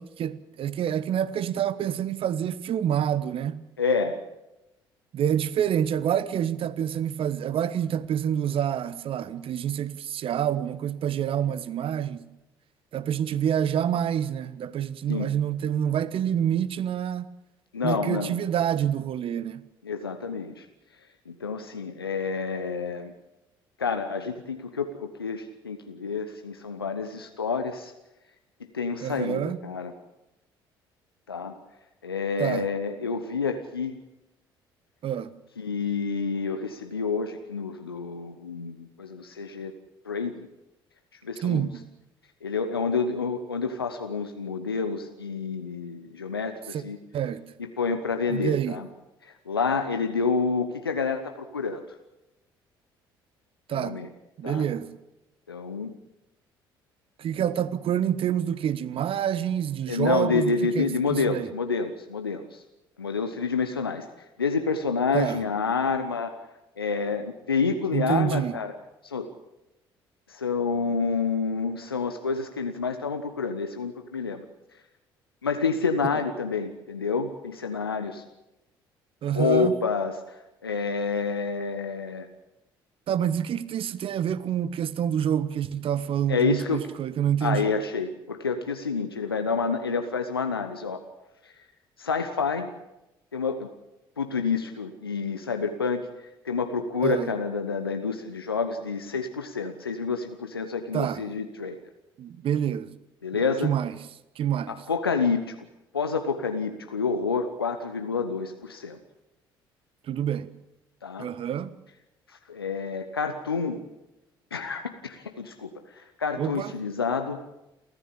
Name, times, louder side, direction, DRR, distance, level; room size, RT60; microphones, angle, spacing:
voice 1, 0.0-3.6 5.1-12.2 12.9-17.3 17.8-19.6 29.0-29.6 32.4-32.7 35.0-35.3 41.4-41.9 46.7-46.8 47.1-47.4 48.3-48.8 53.7-54.0 54.4-54.9 57.2-61.5 65.1-65.4 67.9-68.5 76.1-76.2 79.2-79.7 83.1-87.7 97.0-97.3 100.9-101.2 102.2-102.9 103.3-104.0 104.4-104.7 110.1-110.5 111.2-111.7 116.4-116.7, right 9 dB, 50° right, 1.3 m, -27 dB
voice 2, 3.8-4.2 15.1-15.3 17.7-18.4 19.8-20.6 21.3-23.1 23.8-27.9 28.7-29.9 31.3-31.5 32.0-33.9 35.6-39.7 40.0-40.5 41.2-41.7 42.4-47.0 47.6-48.9 49.5-51.8 53.7-54.1 54.4-54.7 55.5-55.9 59.9-62.6 63.0-64.0 64.4-66.4 66.8-68.7 69.0-69.3 70.3-74.4 75.4-78.2 79.3-82.3 86.3-86.9 87.4-91.0 92.0-92.7 93.3-93.7 94.2-96.0 96.4-101.8 103.2-103.7 104.7-105.6 105.9-109.0 111.0-111.3 112.5-113.8 114.5-117.4, left 5 dB, 85° left, 1.1 m, -28 dB
29.5 x 14.0 x 8.6 m
figure-of-eight pair, 50°, 12 cm